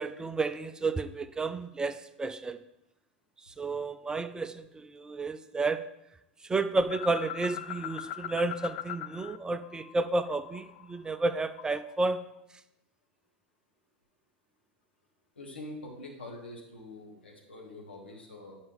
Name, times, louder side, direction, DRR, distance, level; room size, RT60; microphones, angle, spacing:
voice 1, 0.0-2.6 3.5-5.8 6.4-12.2, right 3 dB, 15° right, 11 dB, 0.4 m, -31 dB
sound 1, 6.8-9.4 9.6-11.9, left 13 dB, 50° left, 0.4 m, -41 dB
voice 2, 15.4-18.5, left 1 dB, 75° left, -1 dB, 2.1 m, -45 dB
10.5 x 5.4 x 3.7 m, 0.86 s
figure-of-eight pair, 85°, 6 cm